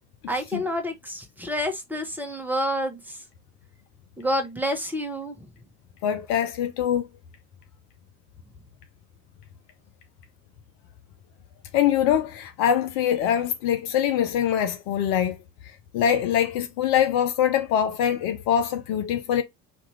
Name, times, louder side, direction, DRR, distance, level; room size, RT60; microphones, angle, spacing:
voice 1, 0.3-3.2 4.2-5.5, equal, 5° right, 1.2 m, -28 dB
voice 2, 6.0-7.1 11.7-15.4 15.9-19.4, left 9 dB, 50° left, 0.7 m, -23 dB
4.2 x 2.9 x 3.2 m
figure-of-eight pair, 60°, 43 cm